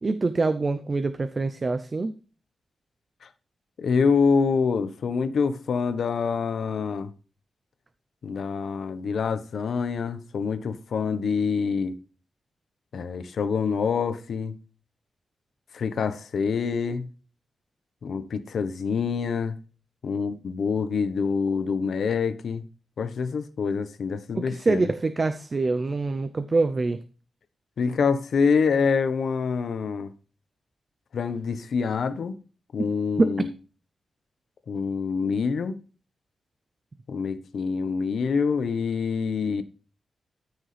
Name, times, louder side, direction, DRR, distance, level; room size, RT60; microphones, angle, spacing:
voice 1, 0.0-2.1 24.3-27.0 33.2-33.3, right 3 dB, 30° right, 0.6 m, -25 dB
voice 2, 3.8-7.1 8.2-12.0 12.9-14.5 15.7-17.1 18.0-19.6 20.0-22.6 23.0-24.8 27.8-30.1 31.1-32.4 32.7-33.5 34.7-35.8 37.1-39.6, left 5 dB, 70° left, 1.1 m, -26 dB
14.0 x 6.3 x 3.3 m
wide cardioid pair, 160°, 0 cm